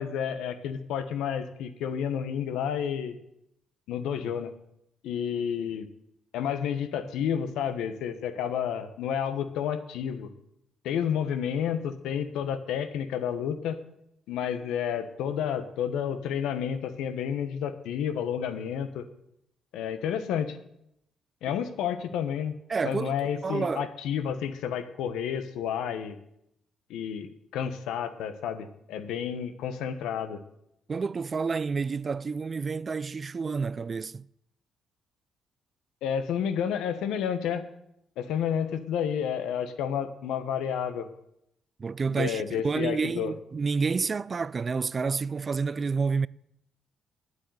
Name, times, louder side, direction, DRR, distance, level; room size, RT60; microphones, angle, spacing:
voice 1, 0.0-3.2 3.9-4.5 5.0-5.9 6.3-10.3 10.8-13.8 14.3-19.0 19.7-20.6 21.4-22.5 22.8-26.2 26.9-30.4 36.0-37.6 38.2-41.1 42.1-43.3, left 8 dB, 90° left, 1.2 m, -30 dB
voice 2, 22.7-23.9 30.9-34.3 41.8-46.3, right 5 dB, 35° right, 0.4 m, -29 dB
9.7 x 8.3 x 9.4 m
cardioid pair, 90°, 0 cm